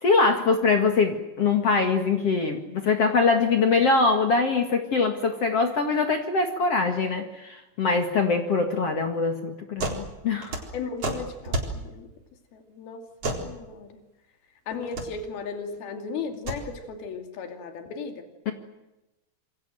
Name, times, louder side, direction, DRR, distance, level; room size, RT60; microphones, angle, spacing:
voice 1, 0.0-10.6 18.5-18.6, left 4 dB, 45° left, 5 dB, 2.5 m, -23 dB
sound 1, 9.8-10.0 10.3-11.8 13.2-13.5 14.7-15.1 16.3-16.6, right 2 dB, 40° right, 4.9 m, -30 dB
voice 2, 10.7-12.1 12.5-13.0 13.4-14.0 14.7-18.3, left 5 dB, 75° left, 6 dB, 4.5 m, -35 dB
27.5 x 24.0 x 7.8 m, 0.97 s
omnidirectional pair, 4.4 m